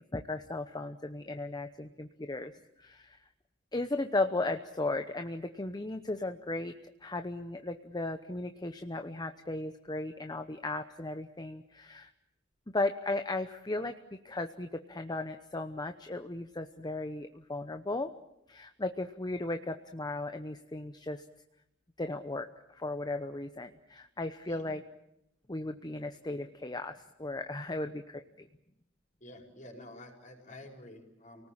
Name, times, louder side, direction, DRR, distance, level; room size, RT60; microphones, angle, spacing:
voice 1, 0.0-3.2 3.7-6.7 7.0-12.1 12.7-13.9 14.2-18.1 18.5-21.2 22.0-24.8 25.5-28.5, left 2 dB, 20° left, 7 dB, 0.9 m, -36 dB
voice 2, 29.2-31.5, left 1 dB, 40° left, 1 dB, 5.4 m, -49 dB
29.5 x 19.0 x 8.8 m, 0.85 s
head